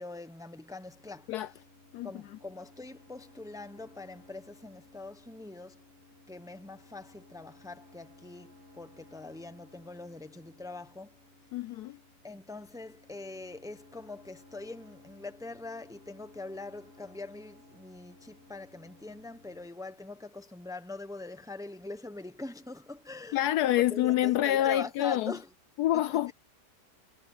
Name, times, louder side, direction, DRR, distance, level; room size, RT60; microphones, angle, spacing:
voice 1, 0.0-1.3 2.0-5.9 6.3-11.2 12.2-25.5 25.9-26.3, left 3 dB, 5° right, 0.9 m, -43 dB
sound 1, 0.8-19.7, left 2 dB, 45° right, 4.2 m, -58 dB
voice 2, 11.5-12.0 23.3-25.3 25.8-26.3, left 13 dB, 75° left, 1.0 m, -27 dB
omnidirectional pair, 1.8 m